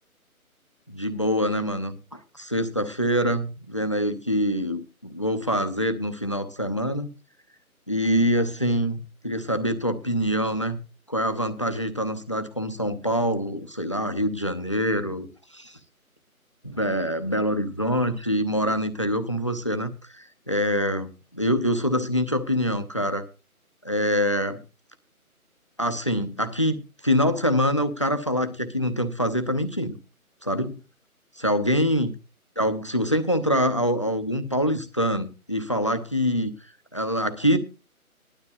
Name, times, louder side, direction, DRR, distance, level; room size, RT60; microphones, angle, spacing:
voice 1, 0.9-7.1 7.9-9.0 9.2-10.8 11.1-15.3 15.5-15.7 16.6-23.2 23.8-24.6 25.8-29.9 30.4-30.8 31.4-32.1 32.6-36.5 36.9-37.6, equal, 20° left, 12 dB, 0.6 m, -25 dB
18.0 x 12.0 x 2.7 m, 0.30 s
figure-of-eight pair, 155°, 44 cm